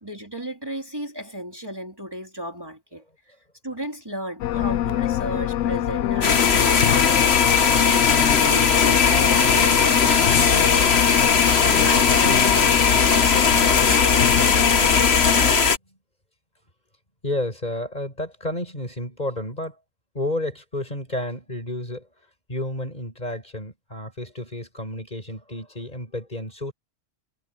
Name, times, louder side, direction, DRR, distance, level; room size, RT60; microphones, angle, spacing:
voice 1, 0.0-3.3 3.6-7.9 8.3-11.1 11.4-15.2, right 1 dB, 20° right, 3.7 m, -35 dB
sound 1, 4.4-15.5, left 12 dB, 85° left, 0.9 m, -25 dB
sound 2, 6.2-15.8, left 5 dB, 60° left, 1.6 m, -18 dB
voice 2, 17.2-19.8 20.1-22.1 22.5-26.7, left 1 dB, 35° left, 6.8 m, -31 dB
omnidirectional pair, 1.2 m